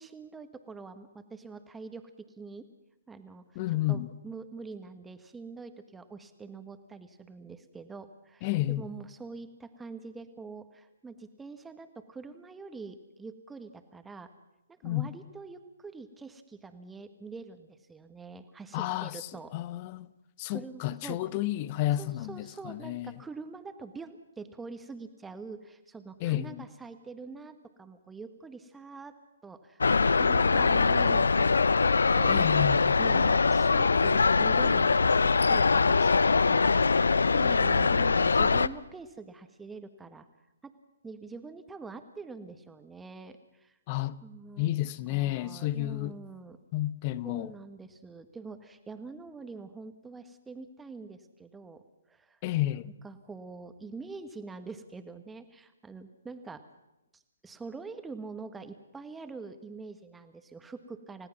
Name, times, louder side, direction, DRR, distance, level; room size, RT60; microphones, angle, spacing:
voice 1, 0.0-2.6 3.1-14.3 14.7-19.5 20.5-21.3 22.0-29.1 29.4-32.4 32.7-37.0 37.3-40.3 40.6-40.7 41.0-43.8 44.2-44.8 45.1-46.6 47.2-51.8 52.1-52.4 53.0-56.6 57.1-61.3, right 4 dB, 10° right, 1.4 m, -45 dB
voice 2, 3.6-4.1 8.4-8.8 14.8-15.1 18.7-19.2 19.5-20.1 20.4-23.1 26.2-26.6 32.3-33.0 43.9-44.2 44.6-46.1 46.7-47.5 52.4-52.9, left 15 dB, 30° left, 0.9 m, -31 dB
sound 1, 29.8-38.7, left 4 dB, 70° left, 0.6 m, -23 dB
29.5 x 17.0 x 6.0 m
figure-of-eight pair, 135°, 0 cm